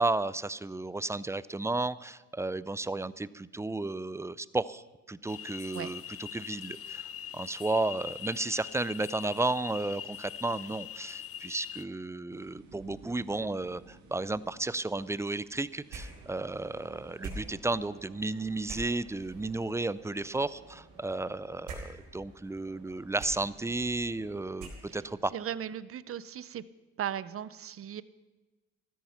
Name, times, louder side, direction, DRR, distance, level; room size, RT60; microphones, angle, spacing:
voice 1, 0.0-7.1 7.3-25.3, right 2 dB, 10° right, 18 dB, 0.4 m, -33 dB
sound 1, 5.3-11.8, left 10 dB, 50° left, 0.6 m, -42 dB
sound 2, 12.3-17.3, right 4 dB, 70° right, 2.5 m, -56 dB
sound 3, 15.9-25.2, right 3 dB, 90° right, 4.2 m, -47 dB
voice 2, 25.3-26.6 27.0-28.0, right 9 dB, 45° right, 17 dB, 0.7 m, -37 dB
14.0 x 14.0 x 5.8 m, 1.2 s
cardioid pair, 90°, 30 cm